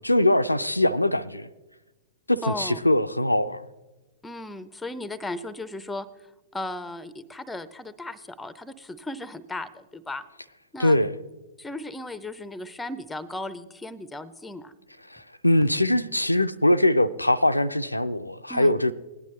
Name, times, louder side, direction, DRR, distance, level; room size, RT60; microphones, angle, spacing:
voice 1, 0.0-1.5 2.3-3.7 10.8-11.2 15.1-18.9, left 1 dB, 85° left, 0.4 m, -22 dB
voice 2, 2.4-2.8 4.2-6.1 6.5-10.2 10.7-11.0 11.6-14.7 18.5-18.8, left 2 dB, 5° left, 0.6 m, -36 dB
18.0 x 10.5 x 3.2 m
figure-of-eight pair, 105°, 0 cm